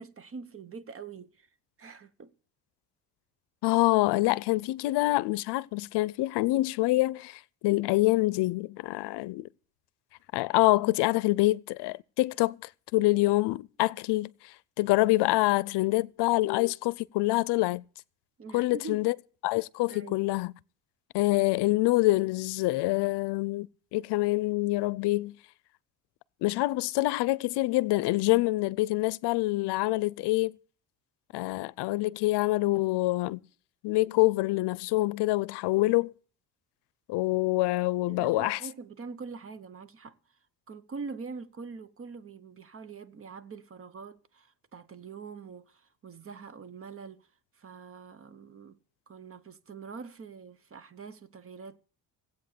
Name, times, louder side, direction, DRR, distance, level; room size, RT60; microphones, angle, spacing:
voice 1, 0.0-1.5 1.8-2.3 18.4-19.0 19.9-20.3 23.0-23.1 38.1-40.4 40.7-47.3 47.5-48.8 49.1-51.8, right 5 dB, 35° right, 1.0 m, -44 dB
voice 2, 3.6-9.5 10.3-12.6 12.9-17.8 18.5-19.1 19.4-20.5 21.1-25.3 26.4-30.6 31.3-33.4 33.8-36.1 37.1-38.6, left 20 dB, 90° left, 0.6 m, -26 dB
17.5 x 8.3 x 6.7 m
cardioid pair, 115°, 40 cm